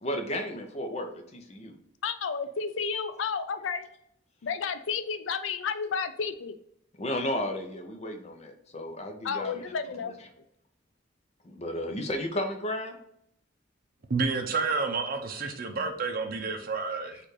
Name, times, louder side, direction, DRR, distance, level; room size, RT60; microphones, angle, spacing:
voice 1, 0.0-1.7 7.0-9.6 11.4-13.0, left 1 dB, 35° left, 4 dB, 0.7 m, -33 dB
voice 2, 2.0-3.9 4.4-6.6 9.2-10.1, left 5 dB, 85° left, 10 dB, 0.4 m, -31 dB
voice 3, 14.1-17.2, right 4 dB, 50° right, 4 dB, 0.6 m, -30 dB
4.4 x 2.5 x 4.8 m, 0.74 s
head